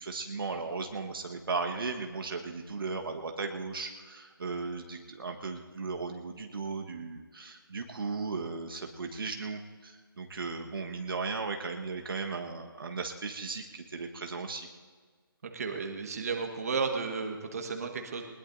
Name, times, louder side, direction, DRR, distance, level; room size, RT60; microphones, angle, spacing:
voice 1, 0.0-14.7, right 4 dB, 70° right, 3 dB, 1.4 m, -36 dB
voice 2, 15.5-18.2, right 5 dB, 40° right, 3 dB, 1.6 m, -33 dB
21.5 x 20.5 x 2.7 m, 1.5 s
hypercardioid pair, 170°, 12 cm